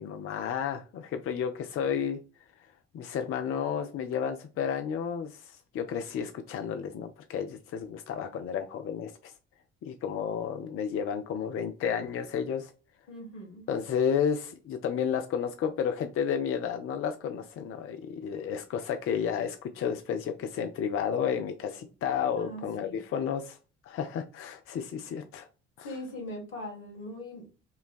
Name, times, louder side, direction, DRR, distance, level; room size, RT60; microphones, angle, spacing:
voice 1, 0.0-2.2 2.9-9.3 9.8-12.7 13.7-23.6 23.8-25.5 25.8-25.9, left 7 dB, 40° left, 0.5 m, -32 dB
voice 2, 13.1-13.6 22.4-23.0 25.8-27.5, left 1 dB, 70° left, 1.5 m, -41 dB
5.3 x 2.2 x 2.2 m
figure-of-eight pair, 45°, 36 cm